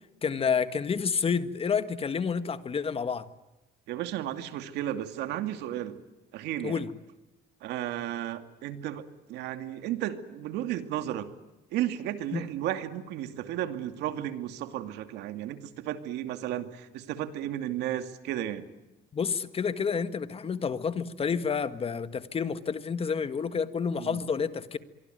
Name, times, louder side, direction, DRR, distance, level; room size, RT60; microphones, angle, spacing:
voice 1, 0.2-3.3 6.6-6.9 12.3-12.4 19.1-24.8, left 6 dB, 35° left, 12 dB, 1.7 m, -29 dB
voice 2, 3.9-6.0 6.3-6.8 7.6-11.3 11.7-18.6 24.0-24.2, right 12 dB, 85° right, 8 dB, 2.6 m, -34 dB
25.0 x 23.5 x 9.3 m, 1.0 s
cardioid pair, 110°, 17 cm